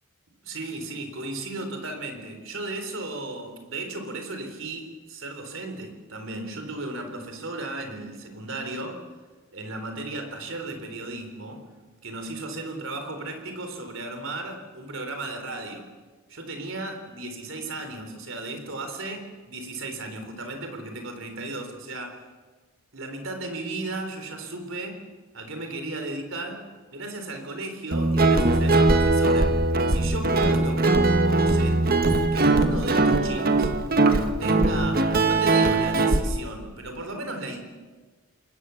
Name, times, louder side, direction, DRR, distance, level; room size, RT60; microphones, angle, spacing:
voice 1, 0.4-9.0 9.5-11.7 12.0-15.9 16.3-22.2 22.9-25.0 25.3-32.0 32.3-33.7 34.4-37.6, right 2 dB, 65° right, 5 dB, 4.0 m, -35 dB
Guitar, 27.9-36.2, right 2 dB, 45° right, 1.4 m, -20 dB
28.5 x 21.0 x 7.1 m, 1.4 s
head